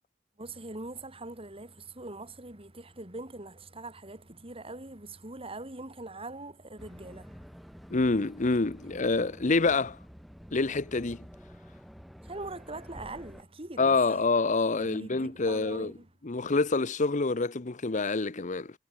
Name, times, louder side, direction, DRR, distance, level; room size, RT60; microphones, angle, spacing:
voice 1, 0.4-7.4 12.2-14.2 14.8-16.1, right 2 dB, 30° right, 3.4 m, -42 dB
sound 1, 6.8-13.4, equal, ahead, 7.5 m, -49 dB
voice 2, 7.9-10.0 10.5-11.2 13.8-15.9 16.2-18.7, left 3 dB, 40° left, 0.8 m, -27 dB
head